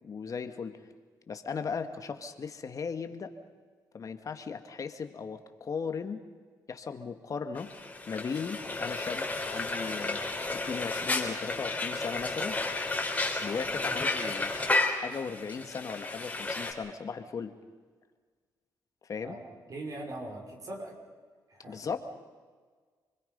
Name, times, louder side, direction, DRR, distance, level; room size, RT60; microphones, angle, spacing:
voice 1, 0.0-0.7 1.3-3.3 3.9-6.2 6.7-7.7 8.1-12.6 13.4-14.5 14.9-17.5 19.0-19.4 21.7-22.0, left 5 dB, 50° left, 7 dB, 1.9 m, -37 dB
Frying (food), 7.6-16.7, left 2 dB, 20° left, 4.0 m, -32 dB
voice 2, 19.2-21.0 21.5-21.9, right 1 dB, 50° right, 1 dB, 5.8 m, -41 dB
28.5 x 21.5 x 5.5 m, 1.5 s
cardioid pair, 75°, 7 cm